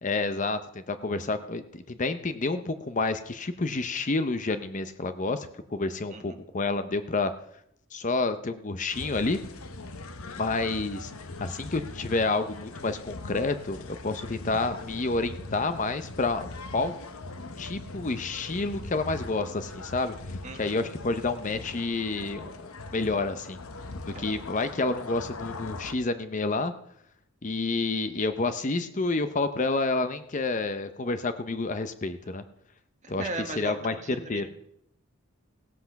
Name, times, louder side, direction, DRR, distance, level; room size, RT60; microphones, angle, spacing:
voice 1, 0.0-7.3 7.9-9.4 10.4-11.1 11.4-16.5 16.7-16.9 17.6-20.1 20.5-23.6 24.2-26.7 27.4-32.4 33.1-34.0 34.3-34.5, left 3 dB, 35° left, 10 dB, 0.6 m, -29 dB
sound 1, 8.9-25.9, left 2 dB, 80° left, 1.0 m, -41 dB
voice 2, 20.4-20.8 24.1-24.2 33.0-34.5, right 3 dB, 35° right, 4 dB, 1.6 m, -37 dB
17.0 x 8.0 x 5.8 m, 0.73 s
head